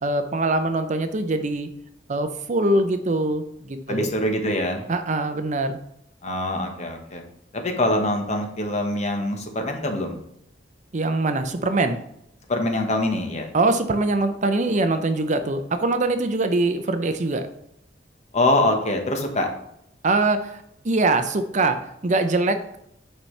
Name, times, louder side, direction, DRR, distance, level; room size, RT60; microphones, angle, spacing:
voice 1, 0.0-1.7 2.1-4.1 4.9-5.8 10.9-12.0 13.5-17.5 20.0-22.6, right 2 dB, 40° right, 9 dB, 0.6 m, -23 dB
voice 2, 3.9-4.8 6.2-7.2 7.5-10.2 12.5-13.5 18.3-19.5, left 1 dB, 40° left, 3 dB, 1.2 m, -24 dB
8.9 x 5.6 x 3.3 m, 0.75 s
head